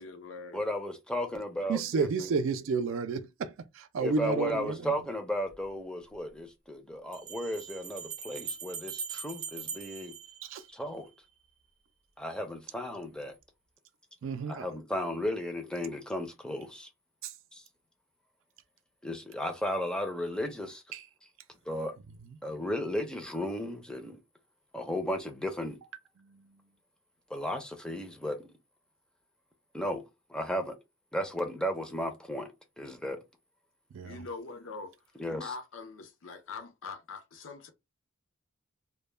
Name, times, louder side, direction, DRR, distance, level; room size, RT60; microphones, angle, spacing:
voice 1, 0.0-0.7 34.0-34.9 35.4-37.7, left 4 dB, 80° left, 0.6 m, -43 dB
voice 2, 0.5-2.3 4.0-10.1 10.7-11.1 12.2-13.3 14.5-16.9 17.5-17.6 19.0-20.8 21.7-21.9 22.4-24.2 24.7-25.8 27.3-28.5 29.7-30.7 31.1-32.5 32.8-33.2 35.2-35.5, equal, 5° left, 0.4 m, -34 dB
voice 3, 1.7-4.8 10.5-10.6 14.2-14.7 17.2-17.3 20.9-21.0 26.2-26.5 33.9-34.2, right 4 dB, 80° right, 0.4 m, -31 dB
Bell, 5.5-5.6 7.1-11.1, right 6 dB, 40° right, 0.6 m, -41 dB
2.2 x 2.1 x 3.1 m
head